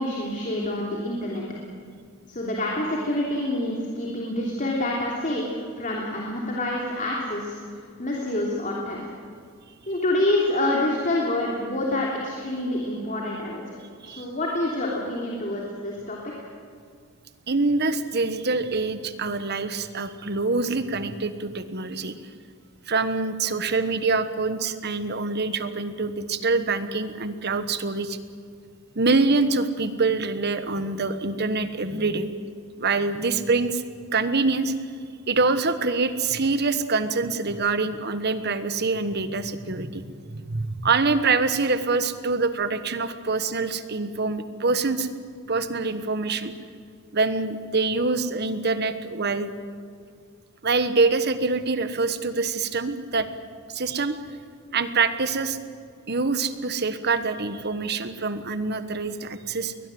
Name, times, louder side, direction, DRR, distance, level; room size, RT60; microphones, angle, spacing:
voice 1, 0.0-1.4 2.3-9.1 9.9-13.6 14.0-16.5, left 1 dB, 40° left, -3 dB, 3.1 m, -27 dB
voice 2, 17.5-22.1 22.9-28.2 28.9-32.3 32.8-33.8 34.1-34.7 35.3-45.1 45.5-46.5 47.1-49.5 50.6-53.3 53.7-54.2 54.7-55.6 56.1-59.7, right 3 dB, 50° right, 11 dB, 1.3 m, -25 dB
21.0 x 21.0 x 7.8 m, 2.2 s
head